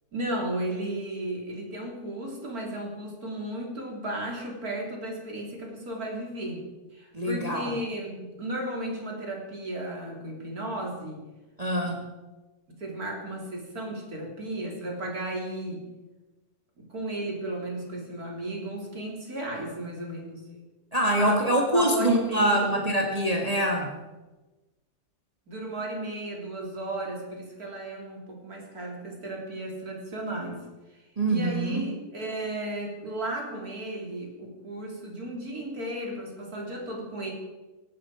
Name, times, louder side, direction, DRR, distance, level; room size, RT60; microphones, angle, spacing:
voice 1, 0.1-11.3 11.8-11.9 12.7-15.9 16.8-20.6 21.2-21.4 21.7-22.6 25.5-30.6 30.9-31.0 31.3-37.3, right 1 dB, 65° right, 0 dB, 3.9 m, -34 dB
voice 2, 7.1-7.7 11.6-12.0 20.9-23.9 31.2-31.8, right 1 dB, 25° right, 0 dB, 2.0 m, -24 dB
18.5 x 15.0 x 4.9 m, 1.1 s
omnidirectional pair, 1.7 m